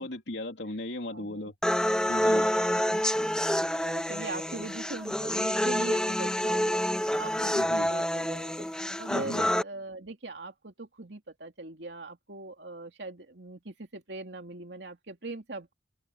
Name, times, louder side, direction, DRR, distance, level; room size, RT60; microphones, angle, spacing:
voice 1, 0.0-1.5 2.1-2.5 7.4-7.9 9.1-9.5, left 1 dB, 85° left, 3.1 m, -36 dB
voice 2, 1.1-1.5 2.3-15.7, right 2 dB, 75° right, 2.9 m, -41 dB
sound 1, 1.6-9.6, equal, 5° left, 1.2 m, -28 dB
head